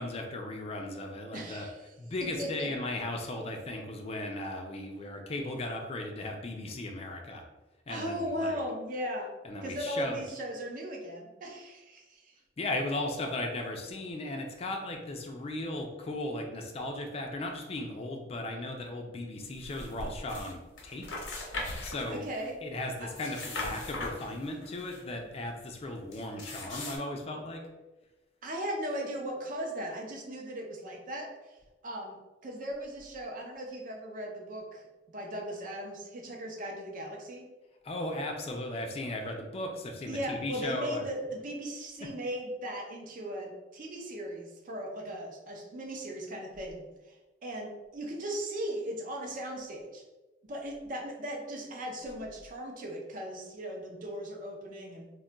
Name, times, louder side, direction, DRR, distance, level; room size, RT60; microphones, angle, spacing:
voice 1, 0.0-1.7 2.0-7.4 7.9-8.6 9.4-10.2 12.6-21.0 21.8-22.3 22.6-27.6 37.8-41.0, left 1 dB, 35° left, 3 dB, 0.4 m, -36 dB
voice 2, 1.3-1.9 2.2-2.7 7.9-9.3 9.6-12.3 21.7-22.6 23.0-23.1 28.4-31.6 31.8-32.2 32.4-37.5 40.1-50.0 50.4-55.1, equal, 50° right, 1 dB, 0.5 m, -38 dB
sound 1, 19.5-20.5 20.8-22.5 23.0-25.0 26.1-27.0, left 2 dB, 80° left, 0.7 m, -39 dB
2.2 x 2.2 x 3.8 m, 1.1 s
head